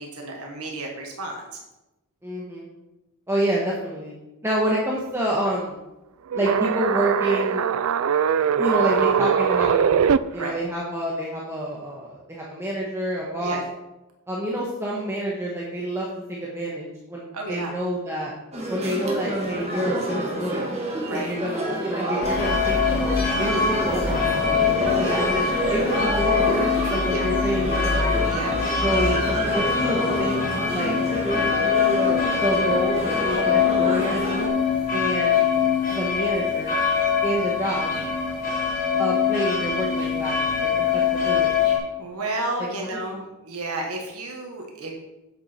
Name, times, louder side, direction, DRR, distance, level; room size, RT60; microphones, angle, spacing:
voice 1, 0.0-1.5 10.4-10.6 13.4-13.6 17.3-17.7 21.1-21.3 24.8-25.2 27.1-27.2 28.3-28.5 42.0-44.9, right 2 dB, 90° right, 0 dB, 1.5 m, -32 dB
voice 2, 2.2-2.7 3.3-4.1 4.4-5.8 6.3-7.6 8.6-9.9 10.3-13.6 14.3-18.3 18.7-20.7 21.1-23.1 23.4-25.4 25.7-28.1 28.8-31.0 32.4-34.3 34.9-35.5 35.9-36.8 37.2-37.9 39.0-41.6 42.8-43.2, right 1 dB, 10° right, -5 dB, 1.2 m, -28 dB
sound 1, 6.3-10.2, right 7 dB, 75° right, 0.4 m, -21 dB
sound 2, 18.5-34.5, right 1 dB, 30° right, 1.8 m, -28 dB
sound 3, 22.2-41.8, left 6 dB, 40° left, 2.6 m, -23 dB
8.2 x 8.0 x 4.4 m, 0.99 s
head